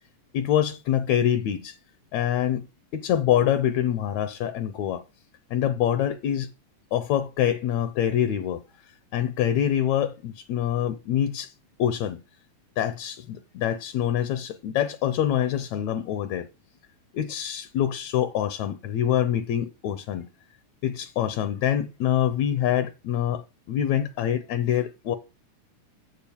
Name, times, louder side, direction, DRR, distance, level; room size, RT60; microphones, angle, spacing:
voice 1, 0.3-1.8 2.1-2.7 2.9-5.0 5.5-6.5 6.9-8.6 9.1-11.5 11.8-12.2 12.8-16.5 17.1-20.3 20.8-25.2, left 10 dB, 75° left, 1.8 m, -25 dB
7.6 x 7.1 x 7.0 m
omnidirectional pair, 3.6 m